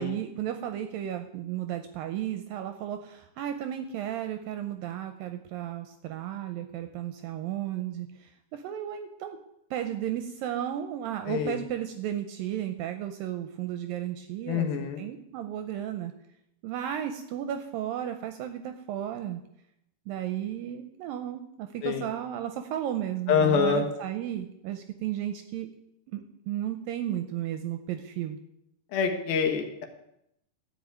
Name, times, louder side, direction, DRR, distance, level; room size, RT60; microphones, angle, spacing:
voice 1, 0.0-9.4 9.7-16.1 16.6-19.4 20.1-25.7 26.1-28.4, right 11 dB, 80° right, 7 dB, 2.1 m, -34 dB
voice 2, 11.3-11.6 14.5-15.0 21.8-22.0 23.3-23.9 28.9-29.8, left 6 dB, 70° left, 4 dB, 2.9 m, -25 dB
13.0 x 5.5 x 9.0 m, 0.80 s
omnidirectional pair, 4.7 m